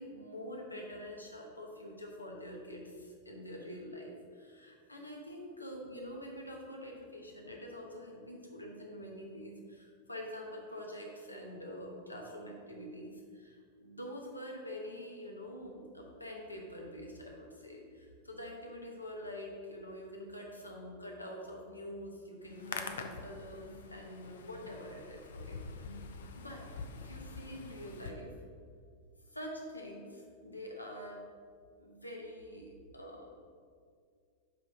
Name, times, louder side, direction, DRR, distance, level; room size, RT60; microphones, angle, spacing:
voice 1, 0.0-26.0 26.3-28.3 29.3-31.2 31.8-33.3, equal, 85° left, 0 dB, 1.2 m, -46 dB
Hands, 22.4-28.1, left 4 dB, 65° left, 0.6 m, -45 dB
5.4 x 5.2 x 5.9 m, 2.1 s
figure-of-eight pair, 90°, 0 cm